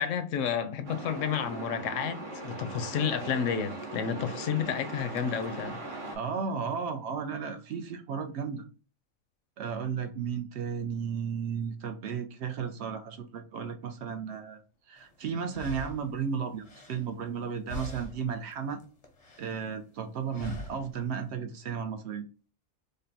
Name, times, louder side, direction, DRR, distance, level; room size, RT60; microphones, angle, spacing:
voice 1, 0.0-5.8, left 7 dB, 70° left, 0.9 m, -31 dB
Truck, 0.8-6.2, right 2 dB, 45° right, 0.9 m, -40 dB
voice 2, 6.1-8.6 9.6-14.6 14.9-18.8 19.4-22.2, right 6 dB, 65° right, 0.7 m, -34 dB
sound 1, 15.0-15.1 15.5-17.4 17.7-18.4 18.7-19.6 20.3-21.0, left 1 dB, 35° left, 0.6 m, -42 dB
5.1 x 2.1 x 2.6 m
omnidirectional pair, 1.4 m